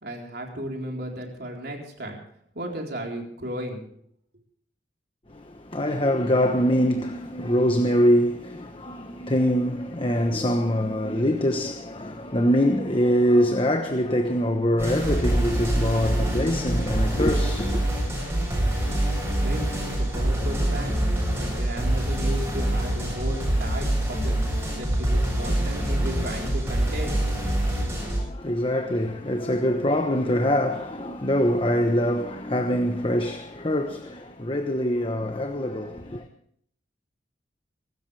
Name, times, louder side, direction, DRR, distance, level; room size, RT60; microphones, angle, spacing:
voice 1, 0.0-2.2 2.5-3.8 19.4-21.0 21.4-24.4 24.7-27.2, equal, 55° right, 4.1 m, -34 dB
voice 2, 5.3-17.9 27.9-36.2, equal, 30° left, 1.1 m, -24 dB
sound 1, 14.8-28.2, right 1 dB, 10° right, 7.8 m, -25 dB
24.5 x 13.5 x 3.4 m
head